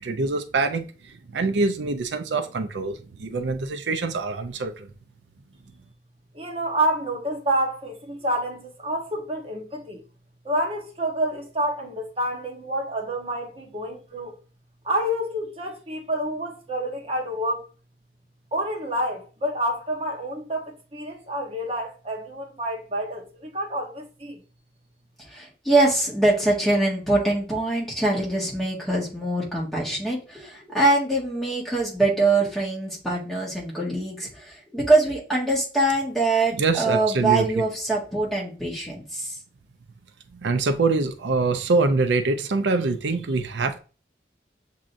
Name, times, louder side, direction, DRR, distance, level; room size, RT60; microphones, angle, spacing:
voice 1, 0.0-4.9 36.6-37.5 40.3-43.8, right 3 dB, 90° right, 0.5 m, -24 dB
voice 2, 6.3-10.0 10.4-14.4 14.8-17.7 18.5-24.4, right 1 dB, 35° right, 1.0 m, -28 dB
voice 3, 25.3-39.4, right 2 dB, ahead, 1.6 m, -23 dB
7.3 x 2.8 x 2.5 m
head